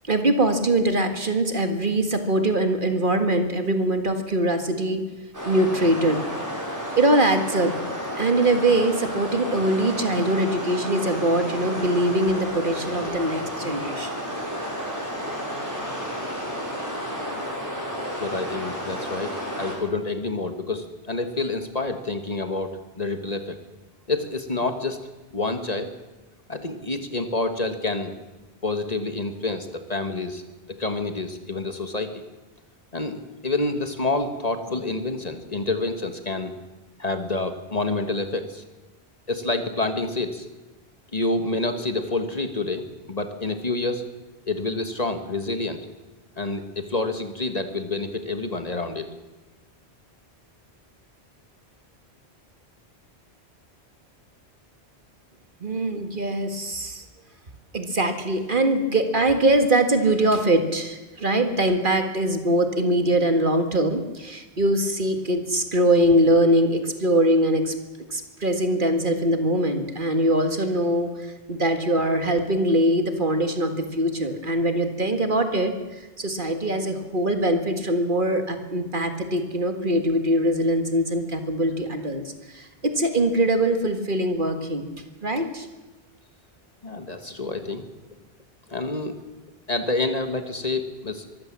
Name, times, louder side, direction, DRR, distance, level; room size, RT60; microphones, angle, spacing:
voice 1, 0.1-5.0 5.5-6.2 7.0-7.7 8.2-14.1 55.6-57.0 57.7-67.7 68.1-75.7 76.2-84.9 85.2-85.7, right 1 dB, 50° right, 7 dB, 2.0 m, -22 dB
sound 1, 5.3-19.8, equal, 15° right, 5.3 m, -32 dB
voice 2, 18.2-23.6 24.1-25.0 25.3-25.9 26.5-28.2 28.6-30.4 30.8-32.2 32.9-36.5 37.0-38.6 39.3-40.5 41.1-44.0 44.5-45.9 46.4-49.1 86.8-87.8 88.7-89.2 89.7-91.4, left 2 dB, 35° left, 7 dB, 1.6 m, -28 dB
23.5 x 15.0 x 7.5 m, 1.1 s
omnidirectional pair, 1.1 m